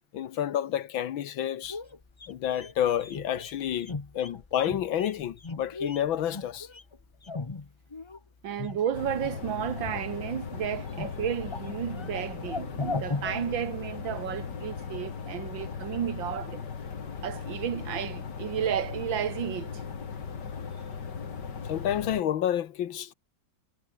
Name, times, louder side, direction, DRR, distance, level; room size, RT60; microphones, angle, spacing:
voice 1, 0.1-1.8 2.3-6.7 21.7-23.1, left 10 dB, 80° left, 1.9 m, -29 dB
sound 1, 1.6-8.2 8.5-9.4 9.8-10.5 10.7-14.1 14.4-14.5, left 3 dB, 30° left, 0.5 m, -38 dB
voice 2, 8.4-16.6 17.2-19.8, right 9 dB, 75° right, 2.0 m, -32 dB
sound 2, 8.9-22.2, left 6 dB, 60° left, 2.7 m, -38 dB
omnidirectional pair, 2.1 m